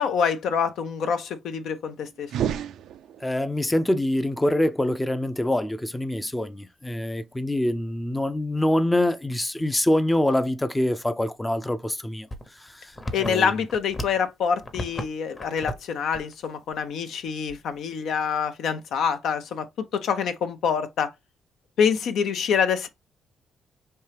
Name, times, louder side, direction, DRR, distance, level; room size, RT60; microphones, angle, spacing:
voice 1, 0.0-2.3 13.1-21.1 21.8-22.9, left 7 dB, 75° left, 0.6 m, -26 dB
sound 1, 2.2-3.5, right 9 dB, 75° right, 0.4 m, -30 dB
voice 2, 3.2-12.3 12.6-12.9 13.2-13.5, left 1 dB, 10° left, 0.5 m, -25 dB
sound 2, 12.3-14.3 14.6-15.1 15.3-15.8 16.1-16.3 16.7-16.8 17.5-17.9, equal, 25° left, 0.9 m, -34 dB
4.3 x 2.8 x 3.4 m
cardioid pair, 90°, 0 cm